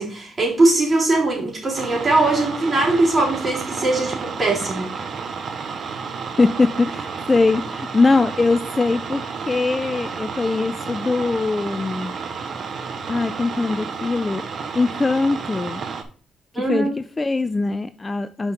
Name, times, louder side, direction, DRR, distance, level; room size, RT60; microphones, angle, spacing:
voice 1, 0.0-4.9 16.5-16.9, right 2 dB, 30° right, 3.5 m, -20 dB
sound 1, 1.7-16.0, right 5 dB, 55° right, 0.9 m, -31 dB
voice 2, 6.4-12.1 13.1-14.5 14.7-15.8 16.7-18.5, left 3 dB, 25° left, 0.4 m, -21 dB
5.8 x 5.2 x 4.1 m
cardioid pair, 90°, 0 cm